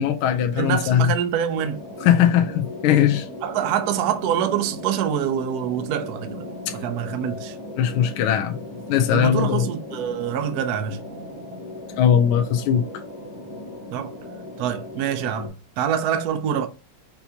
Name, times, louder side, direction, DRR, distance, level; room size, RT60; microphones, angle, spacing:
voice 1, 0.0-1.1 2.0-3.3 6.7-6.8 7.8-8.6 8.9-9.7 12.0-12.8, left 9 dB, 80° left, 1.5 m, -19 dB
voice 2, 0.5-1.8 2.9-3.0 3.4-7.6 9.1-11.0 13.9-14.1 14.6-16.7, right 9 dB, 85° right, 0.8 m, -25 dB
sound 1, 1.5-15.5, left 1 dB, 45° left, 0.3 m, -37 dB
5.7 x 2.7 x 2.8 m
omnidirectional pair, 2.4 m